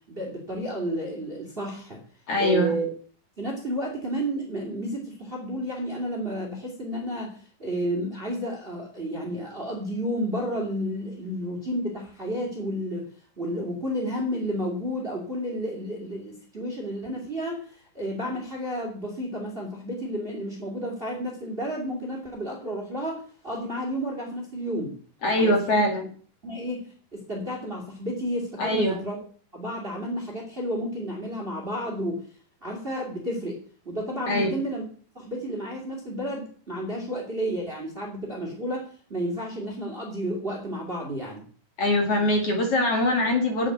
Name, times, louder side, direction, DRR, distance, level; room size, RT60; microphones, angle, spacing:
voice 1, 0.1-2.0 2.4-2.9 3.4-13.1 13.4-24.9 25.4-25.8 26.4-26.9 27.1-29.2 29.5-32.2 32.6-34.8 35.1-41.4, equal, 20° right, 0 dB, 2.5 m, -31 dB
voice 2, 2.3-2.7 25.2-26.1 28.6-29.0 34.3-34.5 41.8-43.7, left 1 dB, 50° left, 2 dB, 3.1 m, -23 dB
8.7 x 7.3 x 8.0 m, 0.43 s
omnidirectional pair, 3.8 m